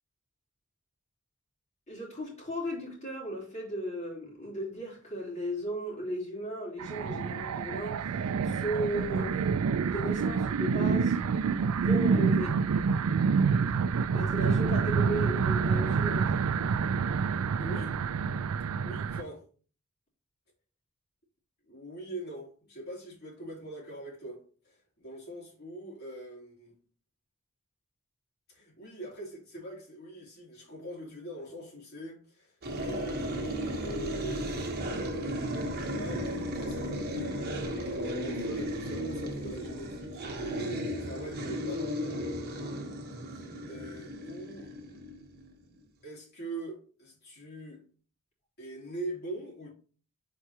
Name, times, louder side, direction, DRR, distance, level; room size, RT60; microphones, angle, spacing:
voice 1, 1.9-9.4 9.8-11.2 11.7-12.6 14.1-16.4, right 1 dB, 30° left, 3.5 m, -36 dB
sound 1, 6.8-19.2, right 5 dB, 75° right, 0.4 m, -27 dB
voice 2, 17.6-18.0 18.6-19.4 21.7-26.7 28.5-34.7 35.3-37.5 37.9-42.0 43.3-44.7 46.0-47.8 48.6-49.7, right 1 dB, 45° left, 3.1 m, -43 dB
sound 2, 32.6-45.5, equal, 45° right, 1.2 m, -35 dB
8.0 x 4.6 x 2.9 m
head